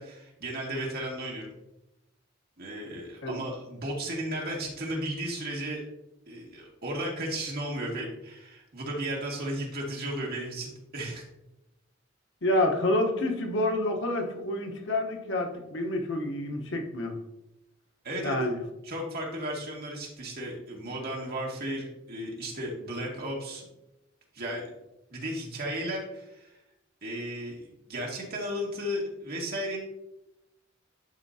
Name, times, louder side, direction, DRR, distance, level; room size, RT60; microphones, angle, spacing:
voice 1, 0.0-1.5 2.6-5.8 6.3-11.2 18.0-18.4 18.8-23.7 24.3-24.7 25.1-26.5 27.0-29.8, right 1 dB, 55° right, -2 dB, 2.1 m, -34 dB
voice 2, 12.4-17.2 18.2-18.6, left 1 dB, 65° left, 3 dB, 1.1 m, -28 dB
11.5 x 4.5 x 2.8 m, 0.92 s
head